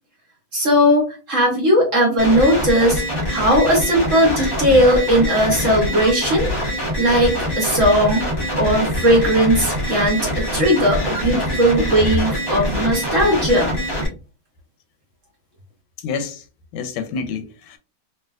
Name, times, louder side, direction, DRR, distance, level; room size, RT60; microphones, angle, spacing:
voice 1, 0.5-3.0 3.3-6.5 7.0-8.3 8.6-13.8, equal, 50° right, 1.0 m, -17 dB
sound 1, 2.2-14.1, equal, 20° left, 0.6 m, -24 dB
voice 2, 16.0-16.4 16.7-17.8, left 5 dB, 90° left, 1.4 m, -28 dB
3.3 x 2.9 x 2.3 m
omnidirectional pair, 2.2 m